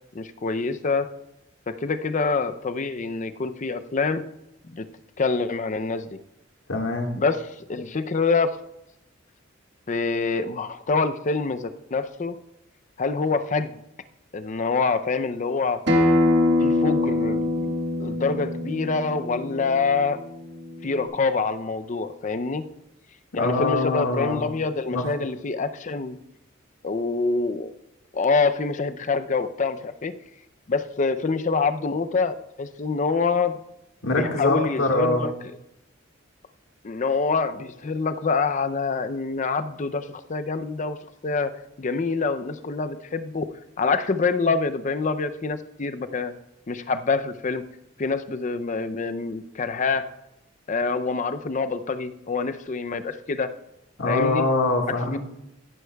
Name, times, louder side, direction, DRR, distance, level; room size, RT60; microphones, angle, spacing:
voice 1, 0.1-1.1 1.7-4.3 4.7-4.9 5.2-6.1 7.2-8.5 9.9-12.4 13.0-13.8 14.3-15.8 16.6-17.7 18.0-20.2 20.8-22.6 23.3-26.2 26.8-27.7 28.1-30.1 30.7-33.6 34.2-35.3 36.8-41.0 41.2-43.5 43.8-46.3 46.7-47.6 48.0-50.0 50.7-53.5 54.1-54.5 55.1-55.2, left 4 dB, 40° left, 10 dB, 0.5 m, -26 dB
voice 2, 6.7-7.1 23.4-24.4 24.9-25.1 34.0-35.3 54.0-55.2, left 2 dB, 80° left, 2 dB, 1.7 m, -23 dB
Acoustic guitar, 15.9-21.1, left 2 dB, 60° right, 1.5 m, -24 dB
14.5 x 11.0 x 2.3 m, 0.86 s
head